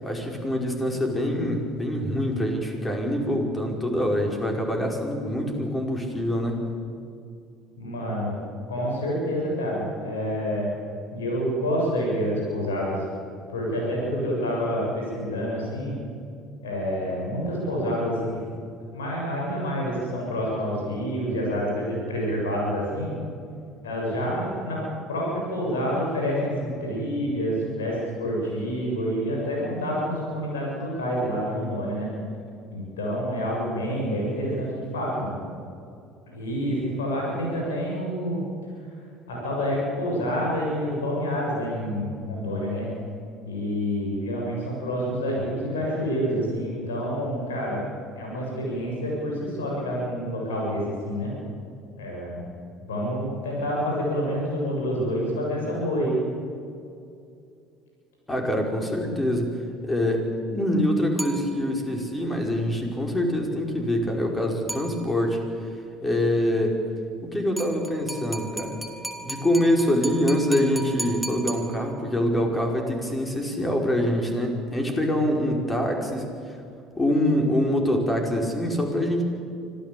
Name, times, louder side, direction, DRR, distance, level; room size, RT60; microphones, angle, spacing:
voice 1, 0.0-6.7 58.3-59.5 59.8-65.4 66.0-66.8 67.2-68.8 69.2-76.3 77.0-79.2, left 1 dB, 20° left, 2 dB, 5.5 m, -25 dB
voice 2, 7.8-8.4 8.7-10.7 11.1-13.0 13.5-15.9 16.6-18.4 18.9-23.2 23.8-24.8 25.1-32.1 32.7-35.4 36.3-38.4 39.3-42.9 43.5-47.8 48.2-51.3 52.0-52.4 52.8-56.1, equal, 85° left, -3 dB, 7.3 m, -28 dB
sound 1, 61.2-62.0 64.7-65.4 67.6-72.2, right 1 dB, ahead, 3.3 m, -37 dB
25.5 x 15.5 x 8.7 m, 2.5 s
hypercardioid pair, 65°, 0 cm